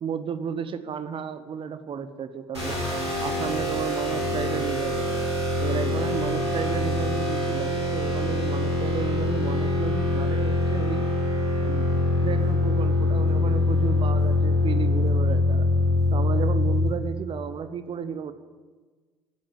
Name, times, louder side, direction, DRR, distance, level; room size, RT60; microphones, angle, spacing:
voice 1, 0.0-2.8 3.2-5.3 5.6-11.0 11.6-11.9 12.2-15.8 16.1-18.3, right 7 dB, 40° right, 12 dB, 1.1 m, -33 dB
sound 1, 2.5-16.9, left 2 dB, 90° right, 3.6 m, -24 dB
16.0 x 8.9 x 7.8 m, 1.4 s
figure-of-eight pair, 55°, 14 cm